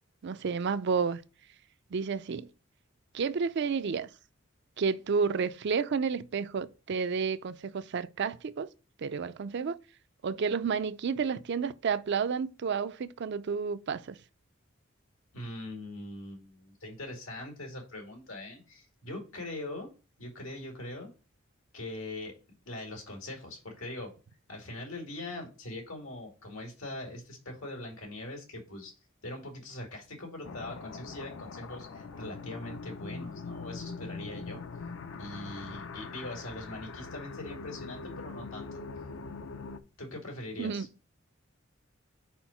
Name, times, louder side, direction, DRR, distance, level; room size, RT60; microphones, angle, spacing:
voice 1, 0.2-1.2 1.9-2.5 3.1-4.1 4.8-8.7 9.0-9.8 10.2-14.2 40.6-40.9, right 5 dB, 55° right, 0.4 m, -31 dB
voice 2, 15.3-19.9 20.2-21.1 21.7-22.4 22.7-24.1 24.5-28.9 29.2-34.6 35.1-38.8 40.0-40.9, left 1 dB, 90° left, 2.3 m, -42 dB
sound 1, 30.4-39.8, left 4 dB, 65° left, 0.6 m, -42 dB
4.7 x 4.4 x 5.6 m
head